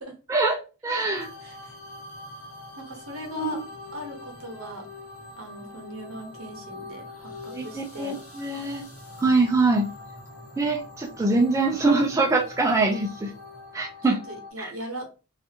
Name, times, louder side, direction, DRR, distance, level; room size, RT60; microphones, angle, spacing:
voice 1, 0.3-1.3 3.4-3.5 7.5-8.9 9.2-9.9 10.6-13.3 13.7-14.2 14.6-14.7, right 3 dB, 15° right, 0.3 m, -23 dB
sound 1, 1.1-14.5, left 2 dB, 70° left, 1.2 m, -43 dB
voice 2, 2.8-3.6 3.9-4.9 5.4-8.2 14.3-15.1, equal, 70° right, 0.8 m, -38 dB
2.4 x 2.4 x 2.7 m
head